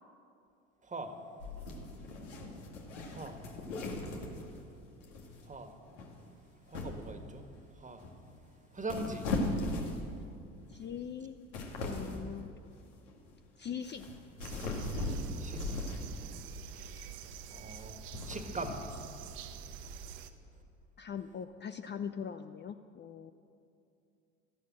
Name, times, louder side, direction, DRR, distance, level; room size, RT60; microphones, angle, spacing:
voice 1, 0.8-1.1 3.1-3.4 5.4-5.8 6.7-8.1 8.7-9.3 15.4-15.6 17.5-18.0 18.3-18.9, right 2 dB, 20° right, 6 dB, 1.8 m, -41 dB
sound 1, 1.4-4.7 5.0-5.5 5.9-6.2 6.7-7.2 8.0-8.4 8.8-10.2 10.7-10.9 11.3-12.3 13.1-13.3 13.8-16.4 17.0-17.3 17.9-19.1, left 2 dB, 80° left, 2.1 m, -38 dB
voice 2, 10.7-11.4 11.8-12.5 13.6-14.1 21.0-23.3, left 7 dB, 30° left, 9 dB, 0.6 m, -41 dB
sound 2, 14.4-20.3, right 6 dB, 70° right, 1.0 m, -47 dB
13.5 x 11.5 x 7.6 m, 2.6 s
hypercardioid pair, 65°, 36 cm